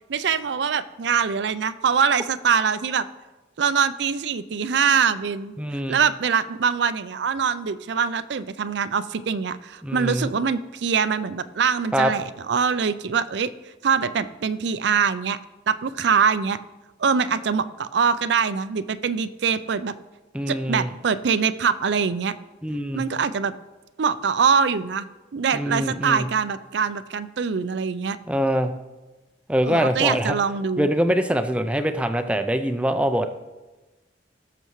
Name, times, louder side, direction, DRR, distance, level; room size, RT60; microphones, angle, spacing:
voice 1, 0.1-3.0 3.6-13.5 13.8-15.4 15.7-16.6 17.0-19.9 20.5-22.3 22.9-23.5 24.0-25.1 25.3-28.2 29.6-30.9, right 6 dB, 65° right, 14 dB, 0.4 m, -23 dB
voice 2, 5.6-6.0 9.8-10.3 11.9-12.1 20.3-20.9 22.6-23.1 25.5-26.3 28.3-28.7 29.5-30.4 30.8-33.3, equal, 5° right, 8 dB, 0.4 m, -23 dB
17.5 x 6.8 x 3.1 m, 1.1 s
head